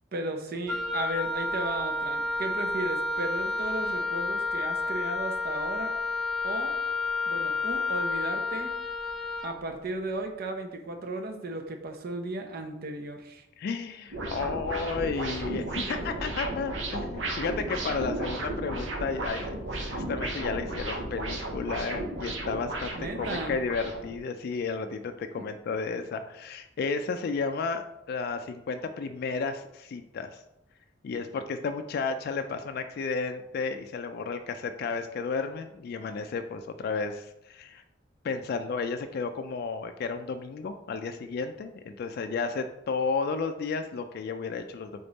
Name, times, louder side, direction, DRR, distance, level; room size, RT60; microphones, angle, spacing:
voice 1, 0.1-5.9 6.4-6.7 7.3-8.7 9.4-13.4 22.9-23.6 25.4-25.5, right 2 dB, 55° right, 5 dB, 0.6 m, -35 dB
Wind instrument woodwind instrument, 0.7-9.5, left 3 dB, ahead, 0.8 m, -30 dB
voice 2, 13.6-19.6 19.9-30.4 31.0-37.8 38.2-45.0, left 4 dB, 55° left, 7 dB, 0.3 m, -32 dB
sound 1, 14.1-24.2, right 1 dB, 85° right, 0.8 m, -34 dB
3.8 x 3.5 x 3.9 m, 0.85 s
head